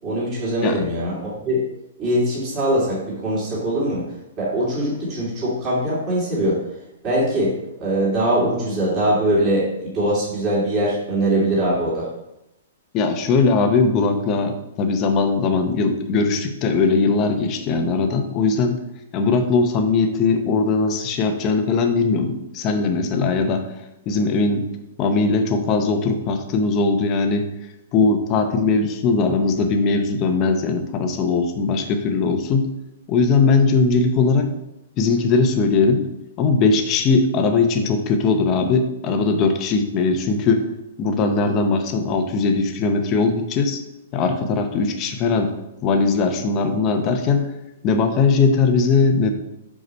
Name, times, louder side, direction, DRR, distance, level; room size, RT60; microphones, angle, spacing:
voice 1, 0.0-1.6 2.0-6.6 7.0-7.5 7.8-12.1, right 1 dB, 25° right, -6 dB, 2.5 m, -22 dB
voice 2, 12.9-18.8 19.1-23.6 24.1-24.6 25.0-27.5 27.9-32.7 33.1-34.5 35.0-36.1 36.4-40.7 41.0-43.8 44.1-45.5 45.8-47.5 47.8-49.3, left 4 dB, 25° left, 6 dB, 0.7 m, -20 dB
5.1 x 4.8 x 5.3 m, 0.89 s
hypercardioid pair, 165°, 0 cm